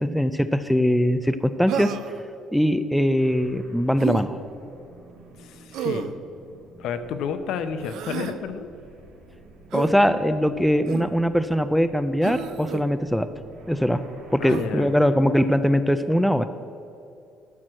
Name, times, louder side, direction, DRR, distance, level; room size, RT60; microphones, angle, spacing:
voice 1, 0.0-2.0 2.5-4.4 9.7-13.3 13.7-14.0 14.3-16.5, equal, ahead, 10 dB, 0.3 m, -21 dB
Human voice, 1.7-2.2 4.0-4.3 5.7-6.2 7.8-8.4 9.7-9.9 10.9-11.2 12.2-12.8 14.5-14.7, right 9 dB, 70° right, 0.5 m, -31 dB
sound 1, 3.2-15.4, right 2 dB, 90° right, 2.4 m, -50 dB
voice 2, 5.4-6.1 6.8-8.7 14.4-14.9, left 7 dB, 65° left, 10 dB, 0.7 m, -31 dB
12.0 x 4.7 x 7.4 m, 2.6 s
cardioid pair, 145°, 0 cm